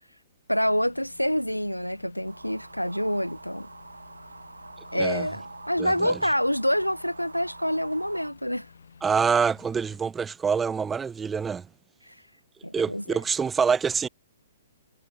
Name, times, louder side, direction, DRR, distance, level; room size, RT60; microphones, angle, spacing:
voice 1, 0.5-3.7 4.9-8.7 12.1-12.2 12.6-13.2, equal, 90° left, 1.8 m, -27 dB
sound 1, 0.6-10.0, left 6 dB, 60° left, 5.3 m, -53 dB
sound 2, 2.3-8.3, right 3 dB, 75° right, 5.2 m, -45 dB
voice 2, 4.9-5.3 5.8-6.2 9.0-11.7 12.7-14.1, right 6 dB, 10° right, 1.1 m, -26 dB
figure-of-eight pair, 120°, 0 cm